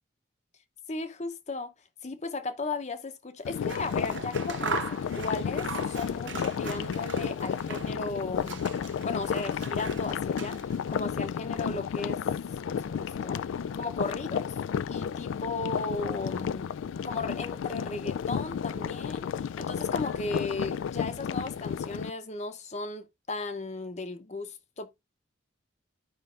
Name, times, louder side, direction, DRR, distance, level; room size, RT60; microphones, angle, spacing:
voice 1, 0.9-1.7 2.0-8.6 9.0-10.6 10.9-12.2 12.6-13.4 13.8-14.4 14.9-16.7 17.0-19.3 19.6-25.0, left 3 dB, 35° left, 0.7 m, -36 dB
sound 1, 3.4-22.1, left 7 dB, 80° left, 0.3 m, -32 dB
Scissors, 3.5-8.1 8.3-10.9, right 5 dB, 70° right, 1.0 m, -40 dB
12.0 x 5.3 x 2.5 m
head